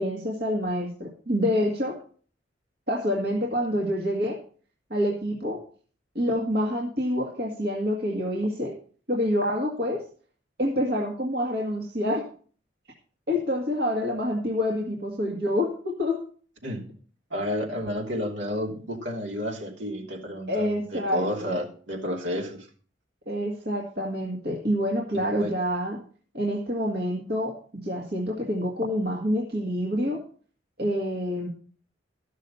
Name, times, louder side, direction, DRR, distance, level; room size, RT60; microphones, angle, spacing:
voice 1, 0.0-2.0 2.9-4.4 4.9-5.6 6.2-8.7 9.1-10.0 10.6-12.3 13.3-16.2 20.5-21.5 23.3-26.0 26.3-30.2 30.8-31.5, equal, 60° right, -1 dB, 2.0 m, -27 dB
voice 2, 17.3-22.7 25.1-25.5, equal, 80° right, 0 dB, 2.9 m, -31 dB
14.0 x 6.5 x 5.6 m, 0.43 s
head